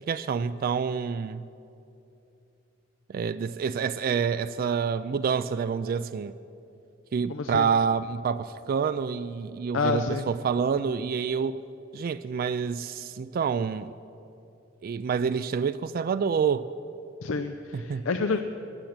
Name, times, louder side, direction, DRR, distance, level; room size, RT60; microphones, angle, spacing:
voice 1, 0.1-1.5 3.1-6.3 7.1-11.6 11.9-14.0 14.8-16.7 17.7-18.1, right 6 dB, 50° right, 0.3 m, -27 dB
voice 2, 7.3-7.6 9.7-10.2 17.2-18.4, left 4 dB, 85° left, 0.6 m, -28 dB
17.5 x 7.2 x 8.7 m
head